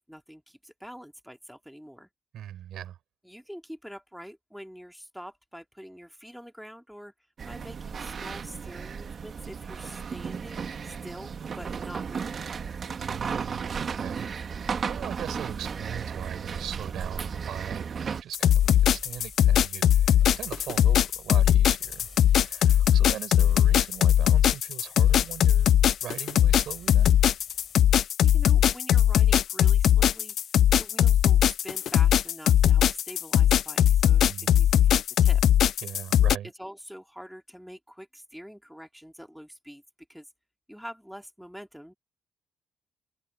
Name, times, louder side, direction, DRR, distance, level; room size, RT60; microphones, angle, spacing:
voice 1, 0.0-2.1 3.2-7.1 7.4-12.4 28.2-30.4 30.8-34.2 34.6-35.4 36.6-39.8 40.1-40.3 40.7-41.9, equal, ahead, 2.5 m, -45 dB
voice 2, 2.3-3.0 13.0-25.7 26.0-27.2 34.2-34.7 35.8-36.5, right 11 dB, 75° right, 6.3 m, -40 dB
sound 1, 7.4-18.2, right 6 dB, 45° right, 1.7 m, -34 dB
sound 2, 15.4-28.0, right 3 dB, 25° right, 6.1 m, -51 dB
sound 3, 18.3-36.4, left 10 dB, 70° left, 0.3 m, -20 dB
cardioid pair, 90°, 0 cm